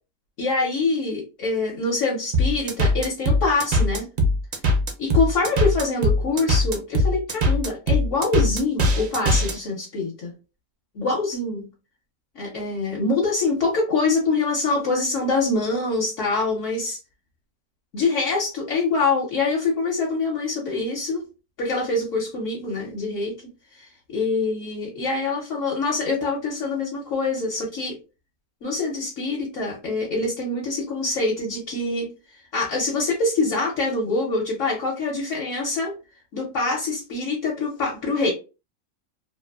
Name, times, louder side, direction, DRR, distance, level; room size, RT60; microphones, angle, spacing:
voice 1, 0.4-4.1 5.0-10.3 10.9-11.7 12.3-17.0 17.9-21.2 21.6-23.3 23.8-28.0 28.6-32.1 32.5-35.9 36.3-38.3, left 3 dB, 65° left, -2 dB, 1.0 m, -25 dB
sound 1, 2.3-9.5, left 1 dB, 65° right, 0.5 m, -21 dB
2.6 x 2.5 x 2.2 m, 0.30 s
omnidirectional pair, 1.5 m